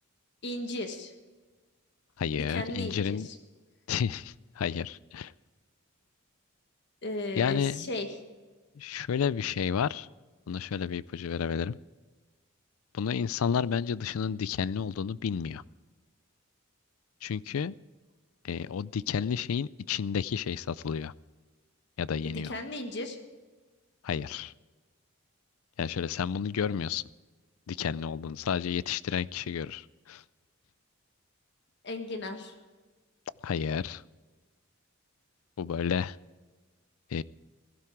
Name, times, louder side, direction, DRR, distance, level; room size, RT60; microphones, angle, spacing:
voice 1, 0.4-1.1 2.5-3.4 7.0-8.1 22.2-23.2 31.8-32.5, left 2 dB, 50° left, 6 dB, 1.6 m, -35 dB
voice 2, 2.2-3.3 3.9-5.3 7.4-7.9 8.8-10.1 10.5-11.8 12.9-15.6 17.2-17.8 18.4-21.1 22.0-22.5 24.0-24.5 25.8-27.0 27.7-30.2 33.4-34.0 35.6-36.2 37.1-37.2, left 7 dB, 80° left, 20 dB, 0.4 m, -31 dB
16.0 x 12.0 x 4.6 m, 1.3 s
head